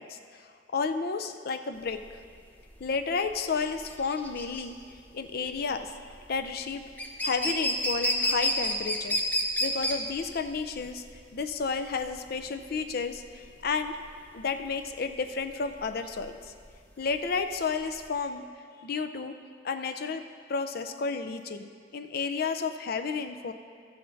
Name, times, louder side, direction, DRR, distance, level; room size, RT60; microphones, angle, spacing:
voice 1, 0.0-2.0 2.8-4.8 5.1-5.9 6.3-6.8 7.2-9.2 9.6-11.0 11.3-14.0 14.3-16.5 17.0-18.4 18.8-19.3 19.6-20.2 20.5-23.5, left 5 dB, 55° left, 8 dB, 0.5 m, -32 dB
sound 1, 1.8-18.2, equal, 10° left, 0.8 m, -32 dB
13.0 x 7.7 x 4.0 m, 2.1 s
head